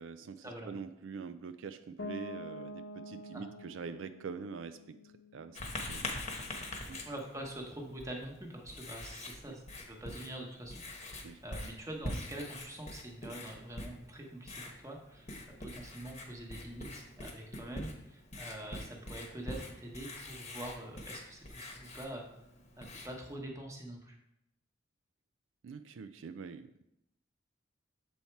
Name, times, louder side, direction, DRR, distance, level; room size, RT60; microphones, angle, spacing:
voice 1, 0.0-5.0 5.3-5.6 5.9-6.1 6.9-7.0 11.2-11.4 25.6-26.8, right 5 dB, 85° right, 10 dB, 0.4 m, -44 dB
Piano, 2.0-7.7, equal, 85° left, 1.1 m, -48 dB
Writing, 5.5-23.3, left 1 dB, 35° left, 1.0 m, -45 dB
voice 2, 7.0-10.7 11.0-22.3 22.8-24.2, right 1 dB, 15° right, 1 dB, 1.1 m, -45 dB
7.1 x 4.2 x 4.5 m, 0.84 s
head